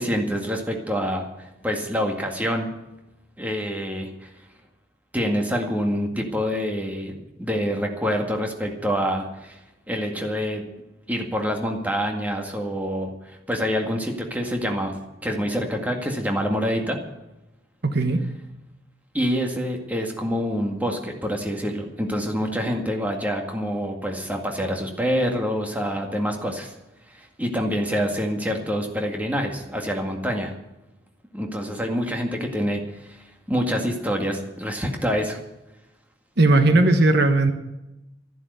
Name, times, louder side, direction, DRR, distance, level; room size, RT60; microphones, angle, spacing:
voice 1, 0.0-2.7 3.4-4.3 5.1-9.6 9.9-10.6 11.1-17.0 19.1-26.7 27.1-30.5 31.3-35.4, equal, 10° right, 2 dB, 1.9 m, -26 dB
voice 2, 17.8-18.2 36.4-37.5, right 2 dB, 55° right, 7 dB, 1.1 m, -17 dB
13.5 x 11.0 x 8.1 m, 0.97 s
head